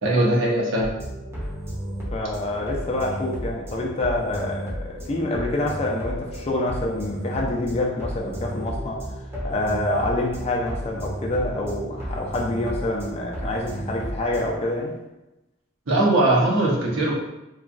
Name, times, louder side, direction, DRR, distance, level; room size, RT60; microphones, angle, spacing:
voice 1, 0.0-0.9 15.9-17.1, right 1 dB, 85° right, -4 dB, 0.8 m, -20 dB
sound 1, 0.8-14.5, equal, 15° right, 0.6 m, -33 dB
voice 2, 2.1-9.0 9.4-14.9, left 1 dB, 30° left, -1 dB, 0.4 m, -27 dB
3.0 x 2.2 x 2.5 m, 0.97 s
head